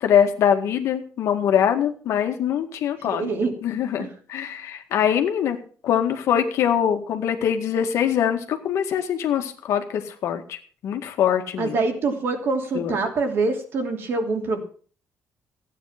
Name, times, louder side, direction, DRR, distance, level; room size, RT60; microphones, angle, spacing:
voice 1, 0.0-3.3 3.6-5.6 5.8-10.6 10.8-11.8 12.7-13.0, left 9 dB, 60° left, 5 dB, 1.9 m, -23 dB
voice 2, 3.0-3.5 4.0-4.1 11.6-14.6, right 3 dB, 45° right, 3 dB, 2.9 m, -25 dB
15.5 x 9.3 x 5.9 m, 0.43 s
cardioid pair, 170°, 6 cm